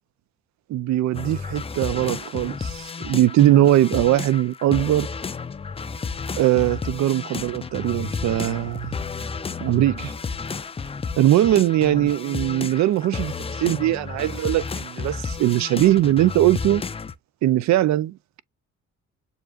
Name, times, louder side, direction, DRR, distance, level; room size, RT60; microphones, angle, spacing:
voice 1, 0.7-5.1 6.4-9.0 9.6-10.1 11.2-16.8 17.4-18.4, right 13 dB, 65° right, 0.5 m, -20 dB
sound 1, 1.1-17.1, left 5 dB, 20° left, 0.4 m, -32 dB
7.2 x 2.6 x 2.4 m
cardioid pair, 90°, 30 cm